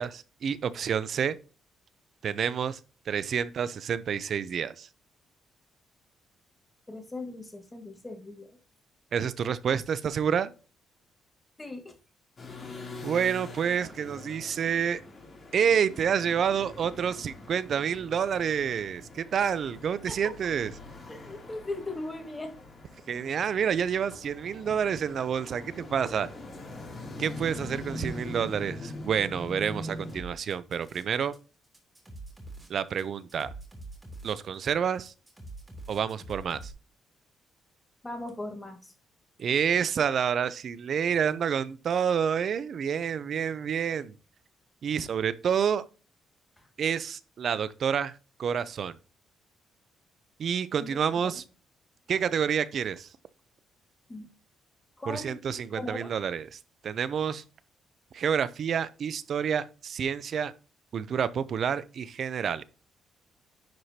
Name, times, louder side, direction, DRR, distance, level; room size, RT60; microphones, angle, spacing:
voice 1, 0.0-1.4 2.2-2.8 3.1-4.9 9.1-10.5 13.0-15.0 15.5-20.7 23.1-26.3 27.2-31.3 32.7-33.5 34.2-35.1 35.9-36.7 39.4-44.1 44.8-45.8 46.8-48.1 48.4-48.9 50.4-51.4 52.1-53.1 55.1-57.4 58.1-60.5 60.9-62.6, right 7 dB, 60° right, 0.6 m, -28 dB
voice 2, 6.9-8.5 11.6-12.0 20.1-20.2 21.1-22.6 38.0-38.9 46.6-46.7 50.8-51.4 54.1-54.3 55.0-55.4 55.8-56.1, left 2 dB, 15° left, 2.0 m, -39 dB
sound 1, 12.4-30.2, left 1 dB, 35° left, 3.2 m, -43 dB
sound 2, 30.1-31.4 31.6-36.7, right 2 dB, 15° right, 3.1 m, -45 dB
10.5 x 4.9 x 2.8 m
cardioid pair, 90°, 0 cm